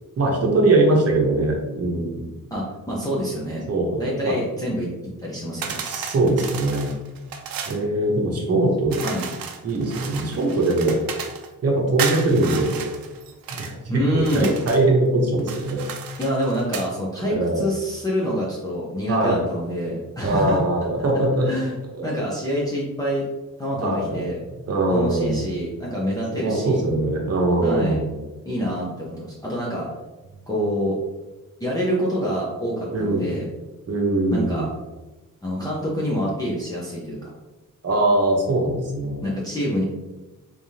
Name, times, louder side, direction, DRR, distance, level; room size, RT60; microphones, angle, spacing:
voice 1, 0.2-2.3 3.7-4.3 5.8-6.9 7.6-9.0 9.6-11.0 11.6-12.8 13.5-15.8 17.2-17.6 19.1-19.4 20.2-21.5 22.0-22.1 23.8-24.3 24.6-25.5 26.3-28.1 32.9-33.3 33.9-34.6 37.8-39.2, right 2 dB, 45° right, 0 dB, 0.9 m, -21 dB
voice 2, 2.5-3.6 4.0-4.9 5.2-5.8 9.0-9.3 13.9-14.5 16.2-20.6 21.4-21.7 22.0-23.2 23.6-24.4 24.9-26.8 27.6-28.0 28.5-29.9 30.5-31.0 31.6-33.5 34.3-34.7 35.4-37.3 39.2-39.8, equal, 10° left, -7 dB, 0.6 m, -26 dB
sound 1, 5.6-7.8 8.9-11.5 12.0-13.7 14.2-14.9 15.4-16.9, right 6 dB, 90° right, 0.5 m, -33 dB
3.5 x 3.4 x 2.7 m, 1.1 s
wide cardioid pair, 155°, 34 cm